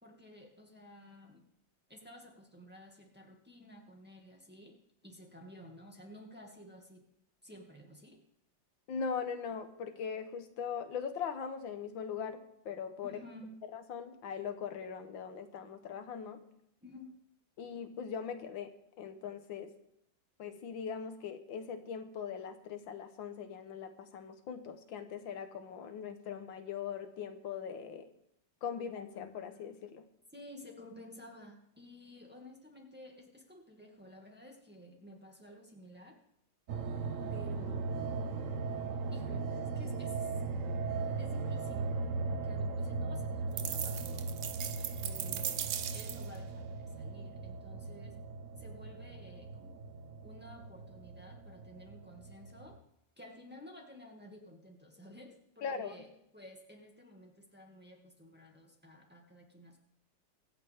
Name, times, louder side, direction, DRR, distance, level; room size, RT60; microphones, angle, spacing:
voice 1, 0.0-1.4 1.9-4.8 5.0-7.0 7.4-8.2 13.0-13.6 16.8-17.1 30.3-36.2 37.3-37.9 39.1-40.3 41.2-41.9 42.2-44.3 45.0-48.2 48.6-49.9 50.2-52.8 53.2-59.8, left 1 dB, 5° right, 0 dB, 2.0 m, -53 dB
voice 2, 8.9-13.2 13.7-16.4 17.6-19.7 20.4-28.1 28.6-30.0 55.6-55.9, left 6 dB, 85° left, 8 dB, 1.9 m, -40 dB
sound 1, 36.7-52.8, right 4 dB, 55° right, 1.1 m, -38 dB
sound 2, 43.6-46.4, right 9 dB, 85° right, 0.6 m, -38 dB
23.5 x 8.8 x 3.6 m, 0.75 s
omnidirectional pair, 2.1 m